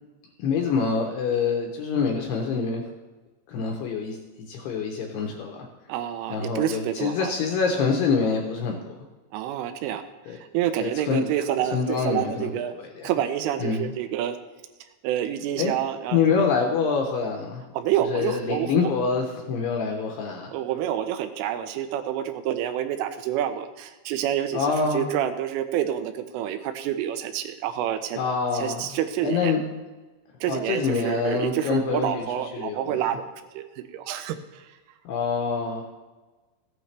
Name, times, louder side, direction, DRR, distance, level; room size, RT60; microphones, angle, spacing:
voice 1, 0.4-2.8 3.5-5.7 6.3-9.0 10.3-10.4 10.8-11.3 11.7-12.5 13.0-13.1 13.6-13.9 15.6-15.7 16.1-17.7 18.1-20.5 24.5-25.1 28.2-28.9 29.2-29.6 30.5-33.0 35.1-35.8, left 5 dB, 75° left, 2 dB, 2.5 m, -26 dB
voice 2, 5.9-7.3 9.3-10.0 10.3-12.7 13.0-14.4 15.0-16.2 17.7-18.9 20.5-28.2 28.5-29.5 30.4-33.2 33.5-34.6, right 11 dB, 85° right, 9 dB, 3.2 m, -28 dB
15.0 x 9.4 x 3.3 m, 1.2 s
omnidirectional pair, 5.6 m